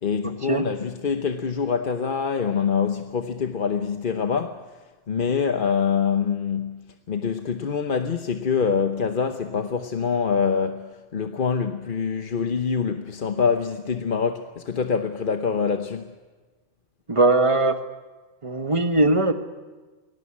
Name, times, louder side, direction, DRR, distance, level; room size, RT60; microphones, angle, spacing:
voice 1, 0.0-4.7 5.1-16.1, left 6 dB, 45° left, 1.0 m, -25 dB
voice 2, 17.1-17.8 18.4-19.3, right 2 dB, 25° right, 1.3 m, -20 dB
21.5 x 18.5 x 9.8 m
omnidirectional pair, 1.3 m